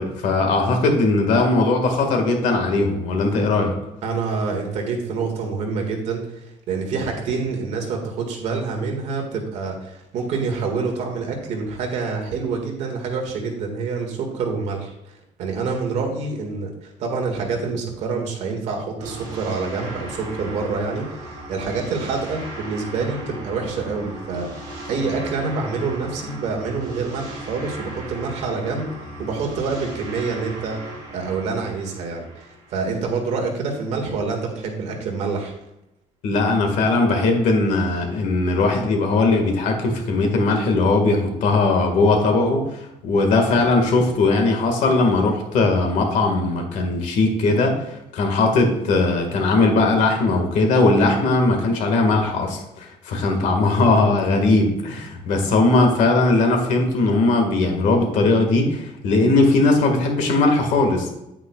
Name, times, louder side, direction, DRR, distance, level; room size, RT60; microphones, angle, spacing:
voice 1, 0.0-3.7 36.2-47.7 48.1-61.1, left 3 dB, 65° left, 4 dB, 1.8 m, -19 dB
voice 2, 4.0-28.9 29.2-30.8 31.1-35.5, right 4 dB, 60° right, 2 dB, 1.9 m, -27 dB
sound 1, 19.0-33.3, right 1 dB, 30° right, 3.2 m, -37 dB
9.3 x 8.9 x 2.4 m, 0.88 s
cardioid pair, 180°, 13 cm